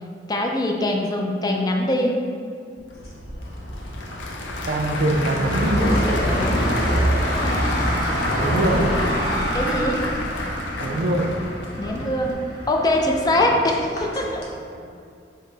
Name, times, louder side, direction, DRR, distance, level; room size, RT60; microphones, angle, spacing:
voice 1, 0.3-2.2 6.2-6.7 8.5-8.8 9.5-10.0 11.8-12.4 12.7-14.4, left 1 dB, 20° left, 1 dB, 0.4 m, -23 dB
Applause / Crowd, 2.8-12.3, left 2 dB, 80° left, 0.5 m, -32 dB
sound 1, 3.0-14.5, equal, 60° left, 0.9 m, -26 dB
voice 2, 4.7-5.9 8.4-8.9 10.8-11.4 14.7-14.9, right 1 dB, 55° right, 1 dB, 0.4 m, -23 dB
5.4 x 2.1 x 3.8 m, 2.4 s
head